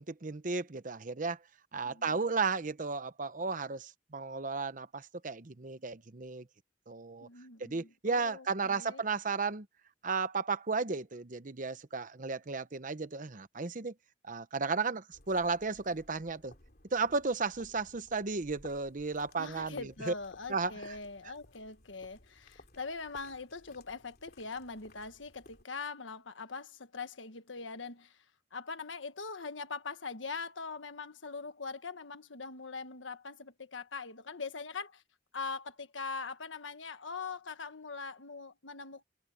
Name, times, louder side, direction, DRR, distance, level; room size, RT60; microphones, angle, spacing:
voice 1, 0.0-1.4 1.7-6.5 6.9-7.3 7.6-9.7 10.0-13.9 14.3-16.5 16.9-20.1 20.5-20.9, right 4 dB, 45° right, 0.9 m, -34 dB
voice 2, 1.8-2.2 7.2-9.0 19.4-28.2 28.5-35.0 35.3-39.0, left 4 dB, 85° left, 1.5 m, -42 dB
sound 1, 15.1-25.6, left 2 dB, 50° left, 3.3 m, -58 dB
head